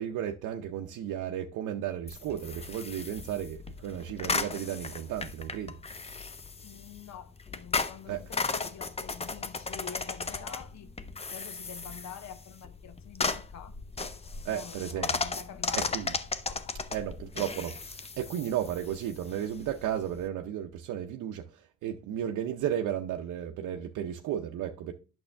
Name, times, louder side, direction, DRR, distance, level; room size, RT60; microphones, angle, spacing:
voice 1, 0.0-5.8 8.1-8.2 14.4-15.1 15.7-16.1 16.9-24.9, right 10 dB, 85° right, 0.6 m, -34 dB
sound 1, 2.1-20.3, left 4 dB, 20° left, 0.6 m, -36 dB
voice 2, 6.6-10.9 11.3-13.7 14.4-16.0 16.5-16.7, left 8 dB, 65° left, 0.9 m, -46 dB
8.7 x 6.2 x 3.3 m
cardioid pair, 90°, 30 cm